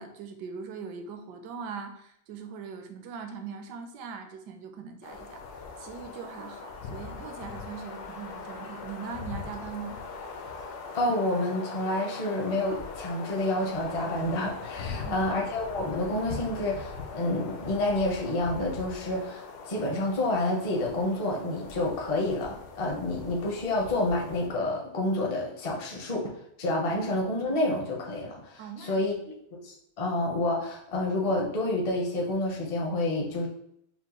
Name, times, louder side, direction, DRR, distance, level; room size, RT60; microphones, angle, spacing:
voice 1, 0.0-10.0 14.9-15.3 28.6-29.1, right 6 dB, 75° right, 5 dB, 1.2 m, -41 dB
sound 1, 5.0-24.5, left 4 dB, 70° left, 1.1 m, -41 dB
voice 2, 10.9-26.3 26.6-29.1 29.5-33.5, left 1 dB, 40° left, -2 dB, 0.5 m, -29 dB
5.8 x 2.1 x 2.9 m, 0.74 s
omnidirectional pair, 1.9 m